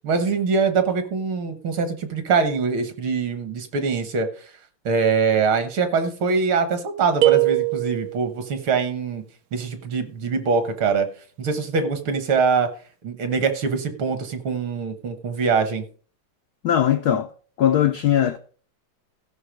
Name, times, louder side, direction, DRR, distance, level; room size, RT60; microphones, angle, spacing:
voice 1, 0.0-4.3 4.9-9.2 9.5-11.1 11.4-12.7 13.0-15.8, right 5 dB, 70° right, 2.0 m, -23 dB
sound 1, 7.2-8.4, right 17 dB, 90° right, 0.8 m, -21 dB
voice 2, 16.6-17.3 17.6-18.4, left 10 dB, 80° left, 0.8 m, -19 dB
15.0 x 5.6 x 5.1 m
omnidirectional pair, 2.4 m